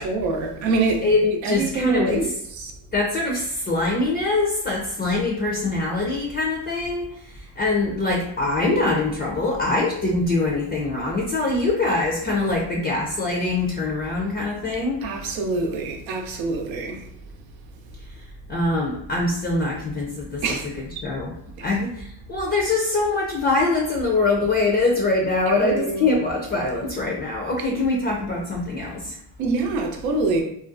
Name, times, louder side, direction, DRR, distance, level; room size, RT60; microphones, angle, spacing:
voice 1, 0.0-2.3 2.6-2.7 15.0-17.0 20.4-20.7 21.6-21.8 25.6-26.1 27.7-27.8 29.4-30.4, right 3 dB, 80° right, 0.7 m, -25 dB
voice 2, 1.0-2.2 2.9-15.0 18.5-20.4 21.0-21.3 21.6-29.2, left 2 dB, 25° left, 0.5 m, -23 dB
2.6 x 2.2 x 2.5 m
cardioid pair, 90°, 45 cm